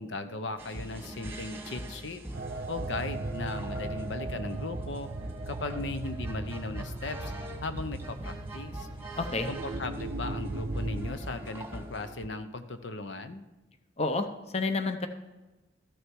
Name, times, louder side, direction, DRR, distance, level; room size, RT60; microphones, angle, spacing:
voice 1, 0.0-2.2 2.7-5.1 5.5-7.3 7.6-8.9 9.5-13.5, left 3 dB, 85° left, 9 dB, 0.8 m, -37 dB
sound 1, 0.6-12.3, right 1 dB, 15° right, 1.3 m, -42 dB
sound 2, 2.3-11.1, right 2 dB, 55° right, 0.5 m, -38 dB
voice 2, 9.2-9.5 14.0-14.3 14.5-15.1, left 3 dB, 35° left, 8 dB, 0.7 m, -29 dB
13.5 x 6.7 x 4.6 m, 1.1 s
head